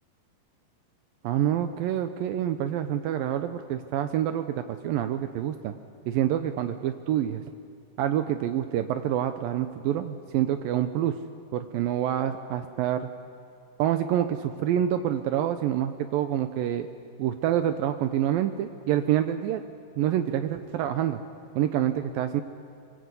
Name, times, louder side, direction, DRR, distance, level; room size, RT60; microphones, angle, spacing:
voice 1, 1.2-5.7 6.1-7.4 8.0-11.2 11.5-13.1 13.8-16.9 17.2-19.6 20.0-21.2 21.6-22.4, right 11 dB, 75° right, 8 dB, 2.5 m, -27 dB
26.0 x 22.5 x 8.3 m, 2.4 s
omnidirectional pair, 4.3 m